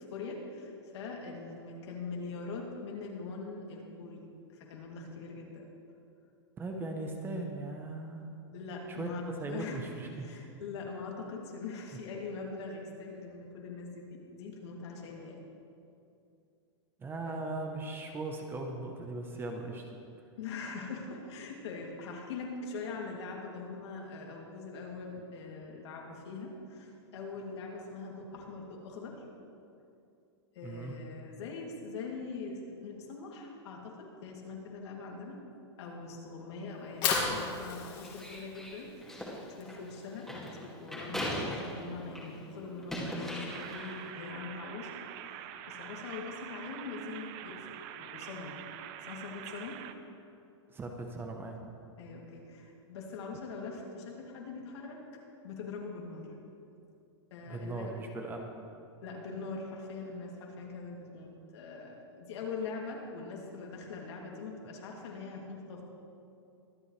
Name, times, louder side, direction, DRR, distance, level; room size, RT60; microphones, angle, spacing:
voice 1, 0.1-4.2 4.5-5.7 8.5-9.8 10.2-15.4 17.2-17.4 20.4-29.2 30.5-35.4 35.8-39.1 39.4-45.0 45.7-48.6 49.0-49.9 52.0-56.3 57.3-58.0 59.0-65.8, left 4 dB, 65° left, -1 dB, 2.7 m, -42 dB
voice 2, 6.6-8.3 8.9-10.5 17.0-19.9 30.6-31.0 50.7-51.7 57.5-58.5, right 2 dB, 15° right, 3 dB, 0.9 m, -39 dB
Fire, 36.7-42.9, left 5 dB, 35° left, 2.2 m, -37 dB
sound 1, 38.0-42.4 42.7-44.0, equal, ahead, 2.3 m, -39 dB
sound 2, 43.5-49.9, right 11 dB, 40° right, 0.6 m, -45 dB
23.5 x 8.4 x 3.3 m, 2.6 s
hypercardioid pair, 145°, 15 cm